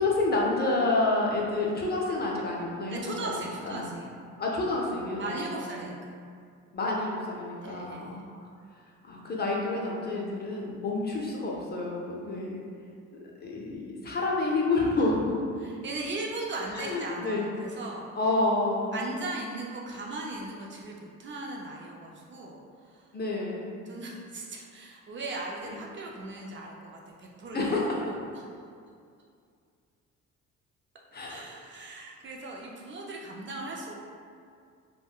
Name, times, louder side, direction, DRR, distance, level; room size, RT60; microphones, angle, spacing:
voice 1, 0.0-3.3 3.6-3.9 4.4-5.8 6.7-8.3 9.0-12.6 13.4-15.2 16.7-17.4 18.2-18.9 23.1-23.7 25.7-25.8 27.5-27.8 31.1-31.4, left 2 dB, 35° left, -3 dB, 0.5 m, -29 dB
voice 2, 2.9-4.1 5.2-6.0 7.6-8.2 15.6-18.1 18.9-23.1 23.9-28.6 31.3-33.9, right 2 dB, 40° right, -1 dB, 0.4 m, -38 dB
3.4 x 2.1 x 2.3 m, 2.3 s
cardioid pair, 90°, 30 cm